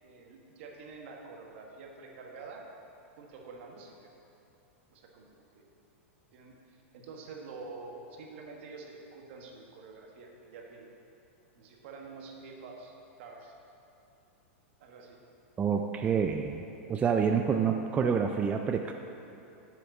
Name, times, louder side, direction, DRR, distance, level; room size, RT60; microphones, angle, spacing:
voice 1, 0.0-2.6 3.2-4.1 4.9-5.7 6.3-10.9 11.5-12.9 13.2-13.5 14.8-15.2, right 4 dB, 60° right, 0 dB, 1.5 m, -47 dB
voice 2, 15.6-16.6 16.9-18.9, right 6 dB, 20° right, 4 dB, 0.3 m, -27 dB
7.5 x 6.8 x 5.5 m, 2.8 s
supercardioid pair, 140°, 7 cm